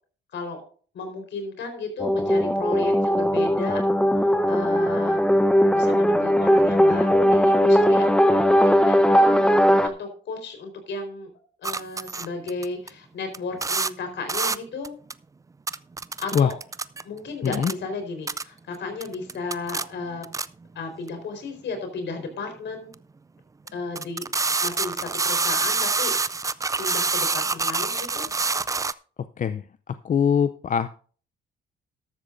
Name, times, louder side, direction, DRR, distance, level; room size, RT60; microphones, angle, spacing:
voice 1, 0.9-3.8 4.5-5.2 5.7-9.4 9.8-11.3 11.6-14.9 16.2-16.5 17.0-20.3 20.7-22.9 23.7-24.3 24.6-26.2 26.8-28.3, left 3 dB, 65° left, 5 dB, 4.3 m, -34 dB
sound 1, 2.0-9.9, equal, 5° left, 0.9 m, -19 dB
sound 2, 11.6-12.9 13.3-13.4 13.6-13.9 14.3-14.6 14.8-15.1 15.7-17.0 17.5-17.7 18.3-18.4 19.0-20.5 21.1-21.2 22.9-23.0 23.7-23.8 24.0-28.9, right 4 dB, 15° right, 0.4 m, -26 dB
voice 2, 30.0-30.9, left 7 dB, 40° left, 12 dB, 0.5 m, -22 dB
13.5 x 12.5 x 2.6 m, 0.43 s
cardioid pair, 90°, 20 cm